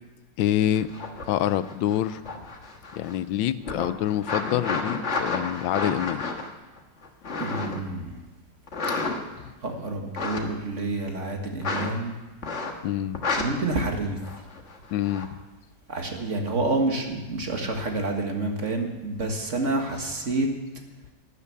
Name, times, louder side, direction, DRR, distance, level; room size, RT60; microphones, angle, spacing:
voice 1, 0.4-0.9 1.3-2.2 2.9-6.2 9.4-9.5 12.8-13.2 14.9-15.3, left 12 dB, 90° left, 15 dB, 1.4 m, -26 dB
sound 1, 0.7-3.2 3.6-7.9 8.7-9.5 10.0-10.4 11.6-11.9 12.4-12.8 13.1-13.4 14.2-15.3 19.8-20.1, left 3 dB, 40° left, 1.7 m, -31 dB
voice 2, 7.4-8.2 9.6-12.2 13.4-14.2 15.9-20.5, right 2 dB, 40° right, 3 dB, 1.9 m, -28 dB
12.0 x 11.0 x 8.3 m, 1.1 s
omnidirectional pair, 2.0 m